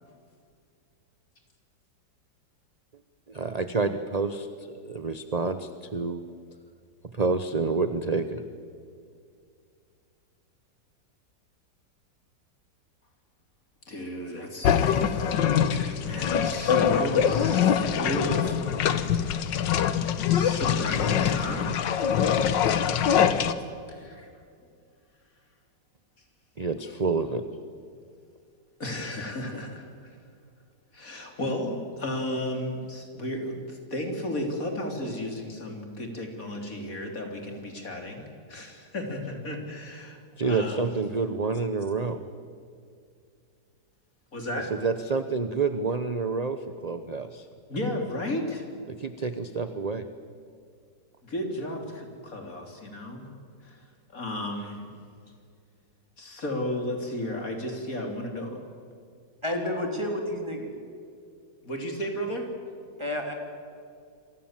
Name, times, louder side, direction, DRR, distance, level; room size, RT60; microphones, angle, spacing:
voice 1, 3.3-6.2 7.1-8.4 26.6-27.4 40.4-42.2 44.7-47.5 48.9-50.0, right 4 dB, 30° right, 9 dB, 0.7 m, -28 dB
voice 2, 13.9-18.7 19.2-19.3 20.3-21.7 23.9-24.3 28.8-30.1 30.9-40.9 44.3-44.7 47.7-48.7 51.2-53.8 54.1-54.9 56.2-58.6 61.6-62.5, left 1 dB, 50° left, 3 dB, 3.7 m, -34 dB
sound 1, 14.6-23.5, left 8 dB, 80° left, 1.7 m, -24 dB
voice 3, 59.4-60.7 63.0-63.3, left 1 dB, 15° right, 2 dB, 3.7 m, -30 dB
27.5 x 23.5 x 7.4 m, 2.3 s
omnidirectional pair, 2.0 m